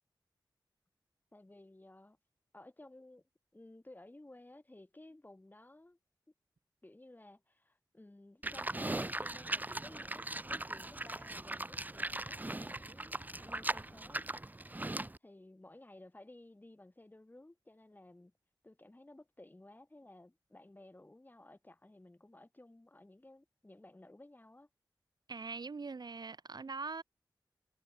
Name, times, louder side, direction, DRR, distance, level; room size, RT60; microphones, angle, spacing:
voice 1, 1.3-2.2 2.5-3.2 3.5-6.0 6.8-14.2 15.2-18.3 18.6-24.7, left 1 dB, 20° left, 7.9 m, -56 dB
Livestock farm animals working animals, 8.4-15.2, right 2 dB, 20° right, 1.2 m, -39 dB
voice 2, 25.3-27.0, right 4 dB, 60° right, 1.1 m, -42 dB
wide cardioid pair, 100°, 8 cm